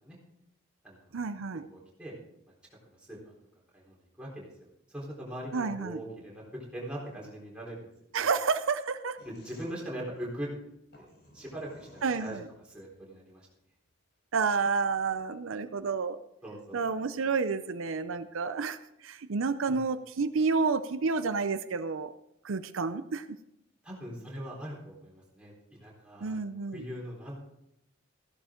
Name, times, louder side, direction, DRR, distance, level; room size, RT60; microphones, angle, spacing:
voice 1, 1.1-1.6 5.5-6.0 8.1-9.2 12.0-12.5 14.3-16.2 16.7-22.1 22.4-23.4 26.2-26.8, right 4 dB, 80° right, 11 dB, 0.6 m, -30 dB
voice 2, 1.7-2.1 2.5-2.6 2.9-3.2 3.7-4.5 4.9-7.9 8.1-8.2 9.2-10.7 11.0-12.4 12.7-13.5 16.4-16.8 19.7-19.8 23.8-26.4 26.7-27.3, equal, 5° right, -4 dB, 4.0 m, -41 dB
sound 1, 9.2-12.8, left 1 dB, 55° left, 4.0 m, -55 dB
15.0 x 11.5 x 3.8 m, 0.83 s
head